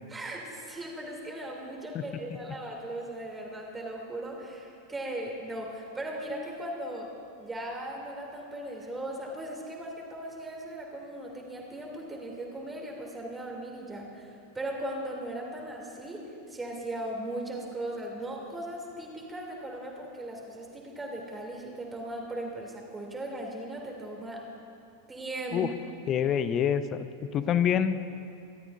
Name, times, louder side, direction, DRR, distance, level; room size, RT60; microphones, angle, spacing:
voice 1, 0.1-7.1 7.4-24.4 25.1-25.7, right 1 dB, 10° right, -1 dB, 2.7 m, -38 dB
voice 2, 26.1-28.0, left 9 dB, 30° left, 13 dB, 0.6 m, -26 dB
27.0 x 13.0 x 2.5 m, 2.5 s
figure-of-eight pair, 90°, 0 cm